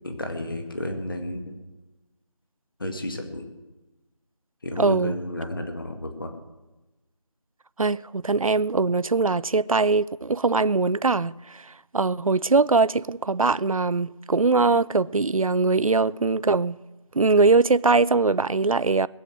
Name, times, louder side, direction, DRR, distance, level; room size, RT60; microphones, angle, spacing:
voice 1, 0.0-1.5 2.8-3.5 4.6-6.4, left 1 dB, 40° left, 2.0 m, -32 dB
voice 2, 4.8-5.1 7.8-11.6 11.9-16.8 17.1-19.1, right 3 dB, 85° right, 0.6 m, -21 dB
21.0 x 7.9 x 8.3 m
figure-of-eight pair, 175°, 17 cm